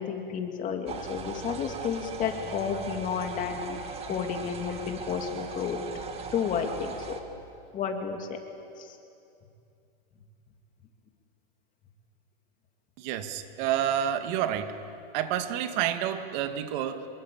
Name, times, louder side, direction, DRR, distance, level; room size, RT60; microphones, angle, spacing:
voice 1, 0.0-3.8 4.1-5.8 6.3-7.2 7.7-8.3 8.8-9.0, left 7 dB, 25° left, 3 dB, 2.9 m, -31 dB
sound 1, 0.9-7.2, right 5 dB, 20° right, 1.9 m, -39 dB
voice 2, 13.0-14.8 15.1-17.1, right 10 dB, 50° right, 8 dB, 2.1 m, -29 dB
26.5 x 22.5 x 8.8 m, 2.6 s
supercardioid pair, 145°, 29 cm